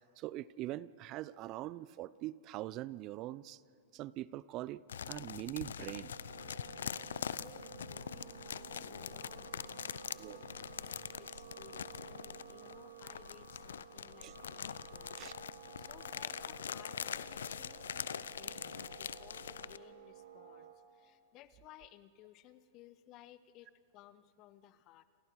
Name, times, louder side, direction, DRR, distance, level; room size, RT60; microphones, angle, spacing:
voice 1, 0.2-3.6 3.9-4.8 5.1-6.2 10.2-10.4 14.2-14.3 15.2-15.3, right 15 dB, 40° right, 20 dB, 0.6 m, -42 dB
sound 1, 4.9-19.8, left 8 dB, 80° left, 0.6 m, -43 dB
sound 2, 5.8-20.7, right 8 dB, 85° right, 4.6 m, -53 dB
voice 2, 7.4-10.5 10.8-15.2 15.8-25.0, left 13 dB, 40° left, 14 dB, 1.1 m, -59 dB
29.0 x 27.5 x 4.8 m, 2.7 s
hypercardioid pair, 110°, 0 cm